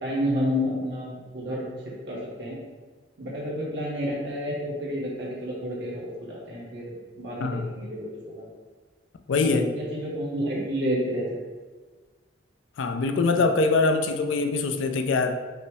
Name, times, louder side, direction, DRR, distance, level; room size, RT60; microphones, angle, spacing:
voice 1, 0.0-1.6 2.1-2.6 3.2-6.8 7.2-8.4 9.4-11.3 13.2-13.4, equal, 65° right, -6 dB, 1.2 m, -30 dB
voice 2, 9.3-9.7 12.8-15.4, left 3 dB, 90° left, 6 dB, 0.4 m, -23 dB
5.4 x 2.0 x 4.7 m, 1.3 s
head